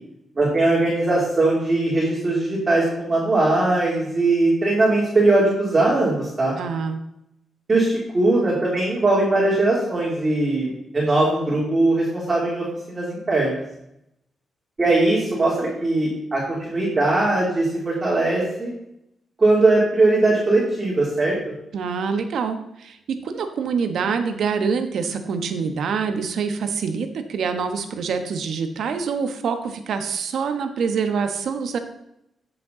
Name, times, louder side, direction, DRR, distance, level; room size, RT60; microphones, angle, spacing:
voice 1, 0.4-6.5 7.7-13.6 14.8-18.7 19.4-21.3, right 2 dB, 25° right, -5 dB, 3.0 m, -20 dB
voice 2, 6.6-7.0 21.7-31.8, right 5 dB, 75° right, 7 dB, 1.2 m, -25 dB
13.5 x 6.9 x 3.9 m, 0.81 s
cardioid pair, 115°, 0 cm